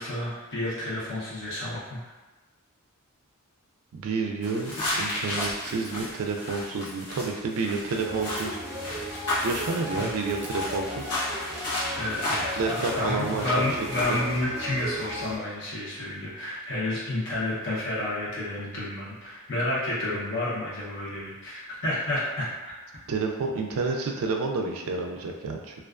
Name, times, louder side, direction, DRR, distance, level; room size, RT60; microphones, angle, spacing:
voice 1, 0.0-2.1 9.9-10.1 11.9-22.6, left 1 dB, 55° left, -7 dB, 0.7 m, -30 dB
voice 2, 3.9-8.6 9.4-11.1 12.6-14.2 23.1-25.7, right 4 dB, 65° right, 2 dB, 0.3 m, -30 dB
sound 1, 4.4-14.3, left 1 dB, 90° left, 0.8 m, -33 dB
sound 2, 7.9-15.4, equal, 30° right, 0.7 m, -36 dB
2.3 x 2.2 x 2.3 m, 1.2 s
head